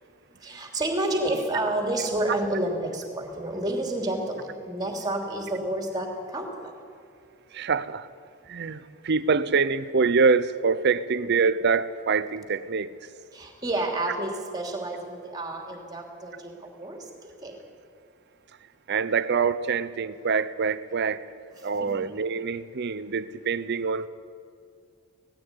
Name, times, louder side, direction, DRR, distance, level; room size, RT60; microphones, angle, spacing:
voice 1, 0.4-6.7 13.3-17.1 17.4-17.6 21.8-21.9, right 1 dB, 20° right, 2 dB, 3.0 m, -30 dB
voice 2, 7.5-8.1 8.5-12.9 18.9-21.3 21.6-24.1, right 5 dB, 50° right, 15 dB, 0.6 m, -25 dB
18.0 x 15.0 x 9.7 m, 2.3 s
head